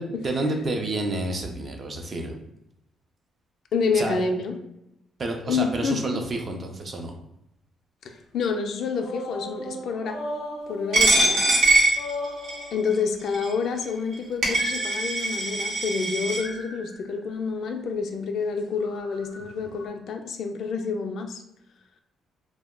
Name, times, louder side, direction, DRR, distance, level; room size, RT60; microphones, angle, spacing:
voice 1, 0.0-2.4 3.9-4.2 5.2-7.1, right 2 dB, 40° right, 3 dB, 0.5 m, -29 dB
voice 2, 3.7-4.6 5.5-6.2 8.0-10.2 10.7-11.4 12.7-21.4, left 5 dB, 70° left, 5 dB, 0.3 m, -28 dB
sound 1, 8.9-11.6 12.0-13.1 14.6-15.5 16.4-17.2 18.6-19.9, left 1 dB, 90° left, 0.7 m, -37 dB
Coin (dropping), 10.9-12.7 13.3-13.5 14.1-14.2 14.4-16.4, right 1 dB, 75° right, 0.8 m, -22 dB
2.2 x 2.0 x 3.5 m, 0.82 s
cardioid pair, 90°, 0 cm